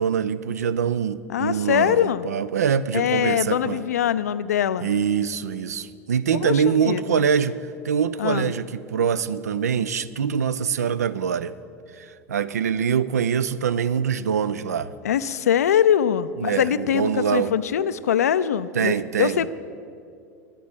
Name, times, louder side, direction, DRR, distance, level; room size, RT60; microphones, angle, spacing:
voice 1, 0.0-3.8 4.8-7.6 7.8-11.5 12.0-14.9 16.4-17.5 18.7-19.5, right 7 dB, 75° right, 15 dB, 0.4 m, -24 dB
voice 2, 1.3-2.3 2.9-4.9 6.4-7.3 8.2-8.5 15.0-19.5, left 9 dB, 75° left, 15 dB, 0.4 m, -23 dB
10.0 x 9.1 x 6.2 m, 2.4 s
figure-of-eight pair, 80°, 9 cm